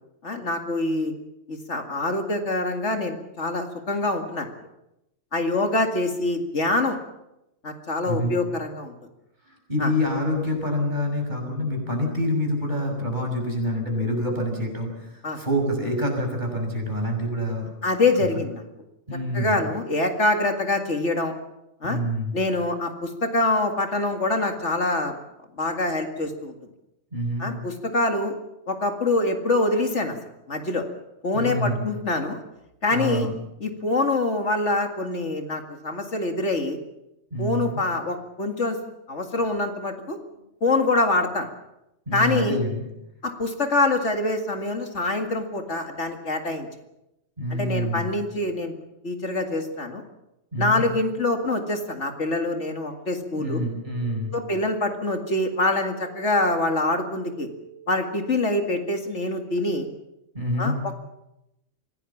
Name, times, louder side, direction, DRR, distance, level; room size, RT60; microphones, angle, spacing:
voice 1, 0.2-1.1 1.5-4.5 5.3-7.0 7.6-8.9 9.8-9.9 15.2-15.4 17.8-18.6 19.3-21.3 21.8-22.0 22.3-25.1 25.6-26.5 27.4-28.3 28.7-30.2 30.5-30.8 31.2-32.4 32.8-33.3 33.6-36.8 37.4-38.8 39.1-40.2 40.6-41.5 42.1-42.6 43.2-46.7 47.5-48.7 49.0-50.0 50.6-53.6 54.3-57.5 57.9-59.9 60.6-60.9, left 2 dB, 65° left, 4 dB, 2.5 m, -25 dB
voice 2, 9.7-17.7 18.2-18.4 19.1-19.6 21.8-22.4 27.1-27.5 31.3-31.8 32.9-33.3 37.3-37.8 42.1-42.8 47.4-48.1 50.5-50.8 53.3-54.3 60.3-60.7, equal, 35° right, 2 dB, 6.5 m, -26 dB
sound 1, 53.5-59.1, right 9 dB, 55° right, 5.0 m, -48 dB
25.5 x 17.5 x 7.3 m, 0.89 s
omnidirectional pair, 1.3 m